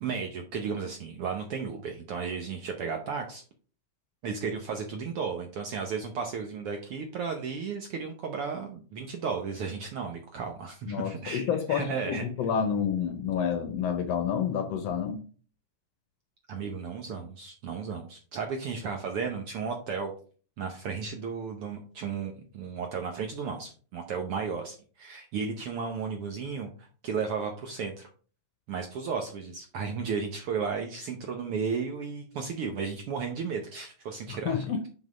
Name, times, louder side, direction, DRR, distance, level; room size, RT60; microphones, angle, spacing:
voice 1, 0.0-3.4 4.2-12.2 16.5-20.1 20.6-28.1 28.7-34.9, right 5 dB, 70° right, 1.4 m, -34 dB
voice 2, 10.9-15.2 34.3-34.8, left 7 dB, 70° left, 1.7 m, -29 dB
6.0 x 5.5 x 5.1 m
omnidirectional pair, 3.5 m